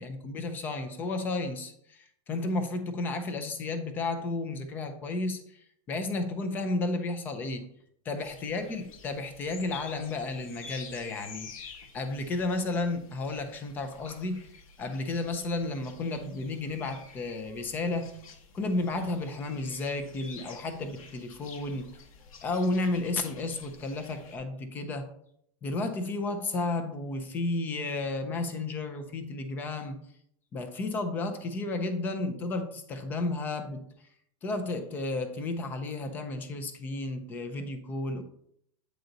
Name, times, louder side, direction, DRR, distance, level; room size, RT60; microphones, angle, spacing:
voice 1, 0.0-5.6 5.9-7.7 8.1-11.7 11.9-14.5 14.8-18.1 18.5-21.9 22.4-25.1 25.6-30.0 30.5-33.8 34.4-38.2, left 2 dB, 10° left, 7 dB, 0.4 m, -32 dB
sound 1, 8.2-24.4, left 5 dB, 80° left, 1.2 m, -50 dB
8.0 x 4.0 x 3.9 m, 0.69 s
supercardioid pair, 175°, 17 cm